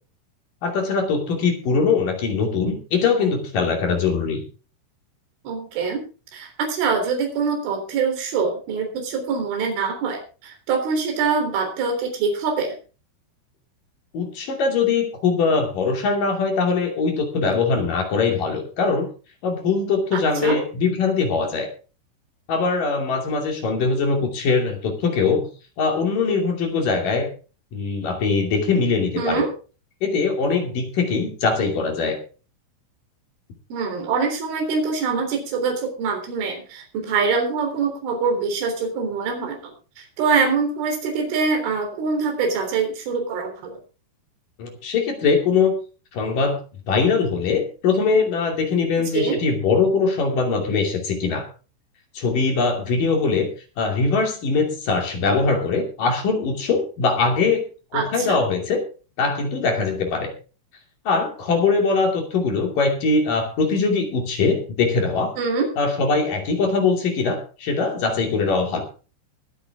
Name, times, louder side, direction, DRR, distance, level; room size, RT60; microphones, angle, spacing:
voice 1, 0.6-4.4 14.1-19.1 19.4-21.7 22.5-25.5 25.8-27.3 27.7-29.4 30.0-32.2 44.6-45.8 46.1-46.6 46.9-51.5 52.2-53.5 53.8-57.7 57.9-58.8 59.2-60.3 61.1-65.3 65.8-68.9, left 4 dB, 50° left, 3 dB, 3.9 m, -22 dB
voice 2, 5.5-6.0 6.3-12.7 20.1-20.6 29.2-29.5 33.7-39.6 40.0-43.8 49.1-49.4 57.9-58.4 65.4-65.7, right 5 dB, 80° right, 3 dB, 6.0 m, -24 dB
22.5 x 8.1 x 3.6 m, 0.35 s
omnidirectional pair, 5.5 m